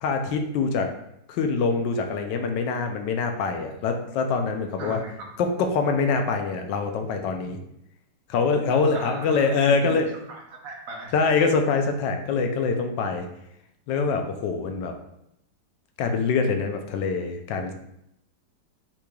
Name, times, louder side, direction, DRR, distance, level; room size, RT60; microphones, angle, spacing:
voice 1, 0.0-0.9 1.3-5.0 5.4-7.6 8.3-10.1 11.1-13.3 13.9-14.9 16.0-17.7, left 4 dB, 80° left, 5 dB, 1.2 m, -24 dB
voice 2, 4.8-5.3 8.9-11.2, right 1 dB, 60° right, 0 dB, 1.1 m, -38 dB
5.9 x 3.1 x 2.3 m, 0.79 s
omnidirectional pair, 2.0 m